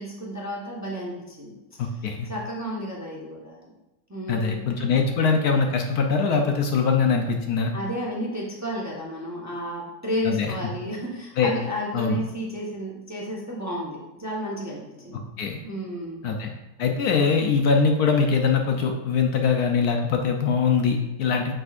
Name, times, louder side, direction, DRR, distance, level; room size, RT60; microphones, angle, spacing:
voice 1, 0.0-1.5 2.2-3.7 4.1-4.6 7.7-15.2 15.6-16.2, equal, 15° right, -4 dB, 0.8 m, -32 dB
voice 2, 1.8-2.3 4.3-7.7 10.2-10.5 11.4-11.5 11.9-12.2 15.4-15.6 16.2-16.5 16.8-21.5, left 5 dB, 70° left, 3 dB, 1.1 m, -22 dB
7.7 x 6.1 x 2.5 m, 1.0 s
omnidirectional pair, 1.9 m